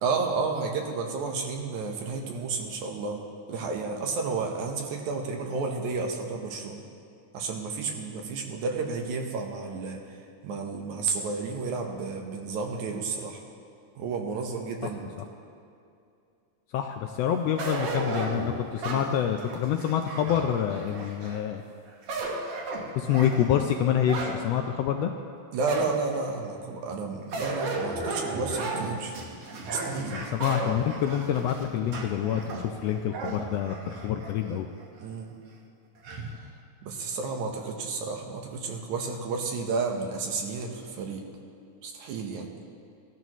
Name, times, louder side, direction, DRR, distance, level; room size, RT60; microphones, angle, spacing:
voice 1, 0.0-3.2 3.5-6.8 7.3-10.0 10.4-13.4 14.0-15.1 25.5-29.1 29.7-30.2 35.0-35.4 36.8-41.2 41.8-42.5, right 4 dB, 85° right, 2 dB, 2.5 m, -31 dB
voice 2, 16.7-21.6 22.9-25.1 30.0-34.7, left 9 dB, 80° left, 5 dB, 1.5 m, -27 dB
sound 1, 17.6-21.4 21.9-24.4 24.9-25.0 25.7-26.3 27.3-34.4 34.8-34.9 36.0-36.4, right 2 dB, 60° right, 2.0 m, -34 dB
17.0 x 12.5 x 3.1 m, 2.5 s
omnidirectional pair, 3.3 m